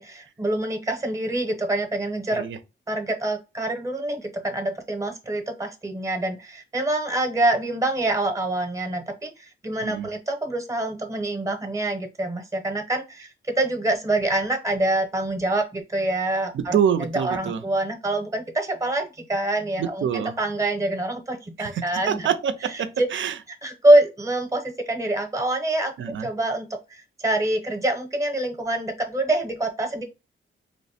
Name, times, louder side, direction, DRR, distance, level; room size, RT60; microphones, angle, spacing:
voice 1, 0.0-2.4 2.9-22.3 23.0-23.1 23.6-25.9 26.2-30.0, right 1 dB, 15° right, 0.7 m, -25 dB
voice 2, 16.5-17.6 19.8-20.4 21.6-23.4 26.0-26.3, right 8 dB, 70° right, 0.4 m, -26 dB
3.0 x 2.1 x 4.1 m
wide cardioid pair, 125°, 20 cm